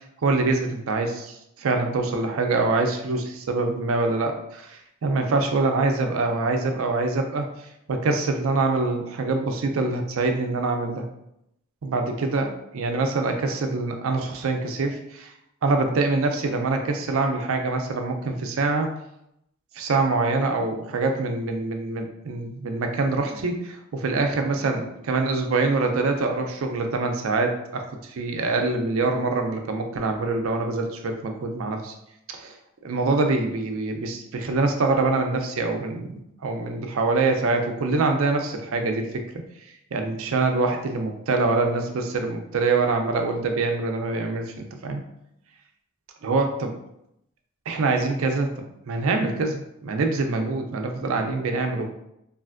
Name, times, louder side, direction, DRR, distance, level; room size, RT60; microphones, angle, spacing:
voice 1, 0.2-7.5 7.9-11.0 11.8-15.3 15.6-18.9 19.8-27.8 28.1-31.9 32.4-32.5 32.8-39.2 39.9-45.0 46.2-46.7 47.7-48.5 48.9-51.9, right 3 dB, 75° right, 4 dB, 0.4 m, -25 dB
3.2 x 2.5 x 2.4 m, 0.80 s
head